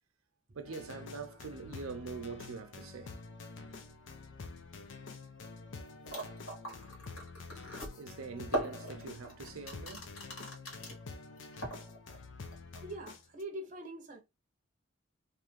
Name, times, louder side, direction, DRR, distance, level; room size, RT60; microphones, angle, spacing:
voice 1, 0.5-3.1 8.0-10.1, right 4 dB, 80° right, 0.5 m, -44 dB
sound 1, 0.6-13.4, left 4 dB, 65° left, 0.5 m, -48 dB
sound 2, 6.1-11.0 11.4-12.2 12.5-12.8, right 1 dB, 85° left, 1.5 m, -40 dB
voice 2, 12.8-14.2, right 1 dB, 35° right, 0.7 m, -43 dB
2.6 x 2.5 x 3.1 m
head